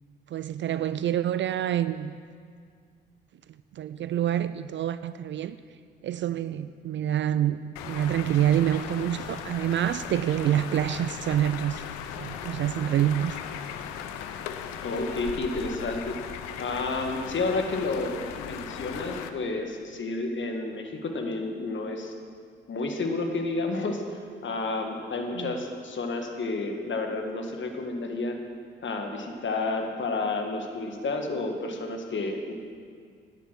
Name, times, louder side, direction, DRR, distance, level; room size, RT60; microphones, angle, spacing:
voice 1, 0.3-2.1 3.7-5.6 6.0-13.4 25.4-25.5, right 11 dB, 40° right, 14 dB, 0.4 m, -27 dB
sound 1, 7.8-19.3, left 9 dB, 70° left, 0.8 m, -38 dB
voice 2, 14.8-16.2 16.6-22.1 22.7-24.0 24.4-28.4 28.8-32.5, left 3 dB, 40° left, 3 dB, 1.9 m, -30 dB
12.5 x 10.0 x 6.1 m, 2.1 s
figure-of-eight pair, 45°, 29 cm